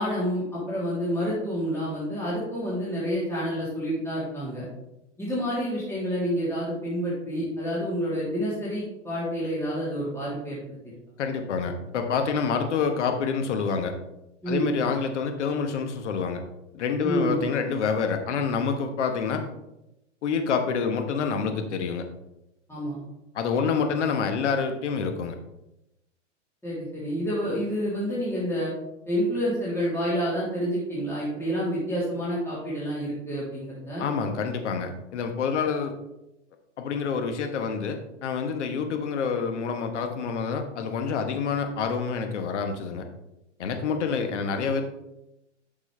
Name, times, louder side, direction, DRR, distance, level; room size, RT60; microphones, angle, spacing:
voice 1, 0.0-4.6 5.2-10.6 14.4-14.7 17.0-17.4 22.7-23.0 26.6-28.7 29.0-34.0, equal, 5° left, -9 dB, 3.1 m, -28 dB
voice 2, 11.2-13.9 14.5-16.4 16.7-19.4 20.2-22.0 23.3-25.4 34.0-35.9 36.8-43.0 43.6-44.8, left 5 dB, 70° left, 6 dB, 1.3 m, -27 dB
8.8 x 6.3 x 3.3 m, 0.89 s
hypercardioid pair, 105°, 36 cm